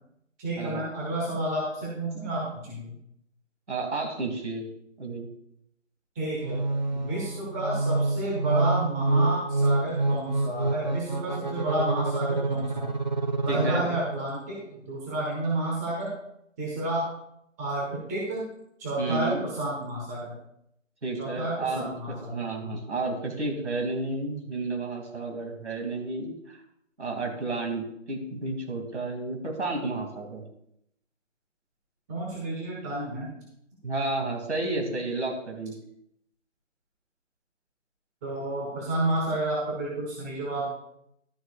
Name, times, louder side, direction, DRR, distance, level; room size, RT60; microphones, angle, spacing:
voice 1, 0.4-3.0 6.1-6.6 6.9-12.9 13.4-16.1 16.6-17.1 17.6-18.4 18.8-20.3 21.2-22.3 22.6-22.8 32.1-33.3 38.2-40.7, right 1 dB, 15° right, -4 dB, 1.3 m, -30 dB
voice 2, 3.7-4.6 5.0-5.3 13.5-13.9 19.0-19.4 21.0-26.6 27.0-30.4 33.8-35.7, right 3 dB, 60° right, 1 dB, 2.7 m, -31 dB
sound 1, 6.4-14.3, right 2 dB, 35° right, 0.6 m, -27 dB
12.5 x 10.5 x 2.4 m, 0.76 s
figure-of-eight pair, 155°, 39 cm